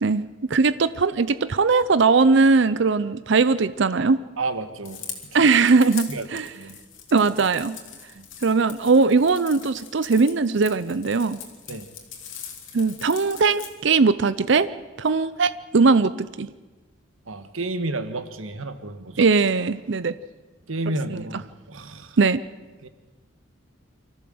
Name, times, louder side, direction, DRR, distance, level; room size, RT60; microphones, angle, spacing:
voice 1, 0.0-4.2 5.3-6.5 7.1-7.8 8.4-11.4 12.7-14.7 15.0-16.1 16.4-16.5 19.2-20.1 21.1-21.2 22.2-22.4, right 4 dB, 60° right, 14 dB, 0.6 m, -20 dB
voice 2, 4.4-5.0 6.1-6.2 6.6-6.8 8.1-8.3 11.7-11.9 17.3-19.3 20.7-22.2 22.8-22.9, right 2 dB, 85° right, 10 dB, 1.5 m, -31 dB
sound 1, 4.9-13.7, left 8 dB, 65° left, 2.9 m, -41 dB
24.5 x 14.5 x 7.8 m, 1.3 s
head